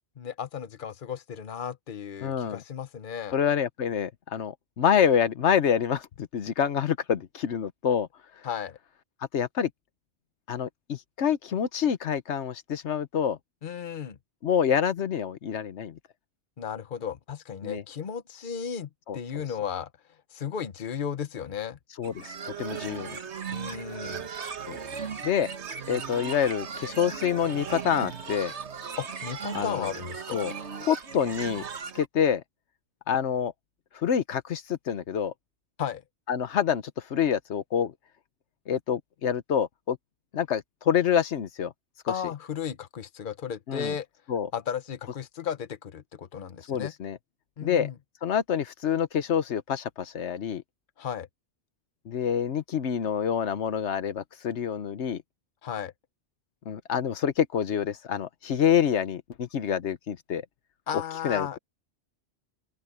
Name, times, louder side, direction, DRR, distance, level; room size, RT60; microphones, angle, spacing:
voice 1, 0.2-3.4 8.4-8.8 13.6-14.2 16.6-19.9 20.3-21.8 23.5-24.3 29.0-30.4 35.8-36.0 42.1-44.1 44.5-46.9 47.6-47.9 51.0-51.3 55.6-55.9 60.9-61.6, left 8 dB, 50° left, 1.1 m, -34 dB
voice 2, 2.2-2.6 3.3-8.1 9.3-9.7 10.5-13.4 14.4-16.0 17.6-17.8 19.1-19.4 22.0-23.2 24.7-24.8 25.2-25.5 25.9-28.5 29.5-29.9 30.3-30.5 30.8-31.6 31.9-32.4 33.1-33.5 33.9-35.3 36.3-36.8 37.1-37.9 38.7-40.0 40.3-41.7 42.0-42.1 43.7-44.0 44.3-44.5 46.7-47.2 47.6-47.9 48.2-50.6 52.1-55.2 56.7-60.4 61.2-61.6, left 8 dB, 80° left, 1.2 m, -27 dB
sound 1, 22.0-32.1, right 6 dB, 80° right, 1.7 m, -37 dB
open air
omnidirectional pair, 1.1 m